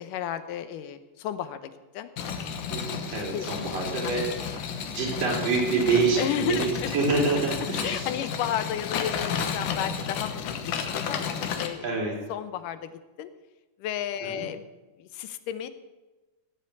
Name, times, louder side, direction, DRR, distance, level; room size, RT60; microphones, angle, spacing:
voice 1, 0.0-2.1 3.3-3.5 6.2-6.9 7.5-11.9 12.3-12.9 13.2-13.3 13.8-14.6 15.0-15.7, left 10 dB, 90° left, 12 dB, 2.5 m, -33 dB
sound 1, 2.2-11.7, left 7 dB, 75° left, 2.6 m, -32 dB
voice 2, 2.7-4.3 4.8-8.1 11.8-12.1 14.3-14.4, right 4 dB, 90° right, -2 dB, 5.7 m, -26 dB
15.5 x 7.8 x 8.3 m, 1.1 s
omnidirectional pair, 3.7 m